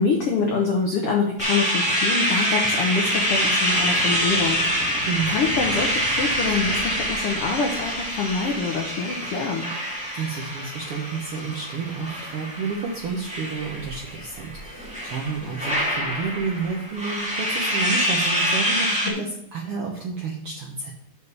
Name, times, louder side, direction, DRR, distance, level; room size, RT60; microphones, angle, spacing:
voice 1, 0.0-4.8 5.3-9.7 19.0-19.2, left 4 dB, 85° left, 1 dB, 1.2 m, -25 dB
sound 1, 1.4-19.1, equal, 5° right, 1.1 m, -26 dB
sound 2, 2.7-8.9, right 2 dB, 40° right, 3.0 m, -40 dB
voice 2, 10.2-20.9, right 5 dB, 70° right, -1 dB, 1.3 m, -30 dB
6.7 x 5.2 x 6.8 m, 0.72 s
omnidirectional pair, 4.0 m